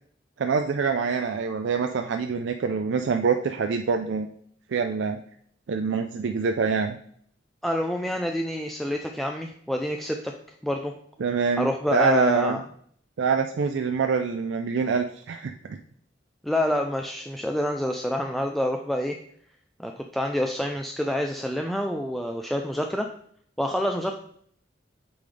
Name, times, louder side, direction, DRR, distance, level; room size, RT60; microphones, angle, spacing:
voice 1, 0.4-4.3 4.7-5.2 5.7-7.0 11.2-12.6 13.2-15.8, right 5 dB, 80° right, 6 dB, 0.4 m, -25 dB
voice 2, 7.6-10.3 10.6-10.9 11.6-12.6 16.4-19.2 19.8-23.1 23.6-24.2, equal, ahead, 3 dB, 0.4 m, -27 dB
8.5 x 3.9 x 3.3 m, 0.62 s
head